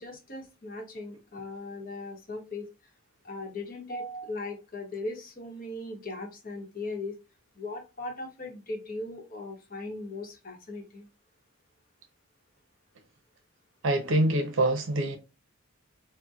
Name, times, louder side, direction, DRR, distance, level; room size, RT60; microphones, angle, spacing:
voice 1, 0.0-2.7 3.2-7.1 7.6-11.1, left 2 dB, 45° left, 0.9 m, -38 dB
voice 2, 13.8-15.2, right 1 dB, 70° right, 0.6 m, -25 dB
4.1 x 2.1 x 2.3 m
head